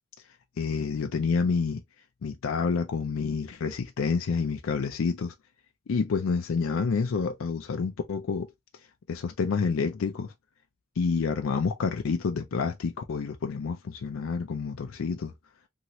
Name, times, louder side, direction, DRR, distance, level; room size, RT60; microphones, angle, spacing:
voice 1, 0.6-1.8 2.2-5.3 5.9-8.5 9.1-10.3 11.0-15.3, left 5 dB, 90° left, 0.4 m, -28 dB
2.8 x 2.7 x 2.9 m
head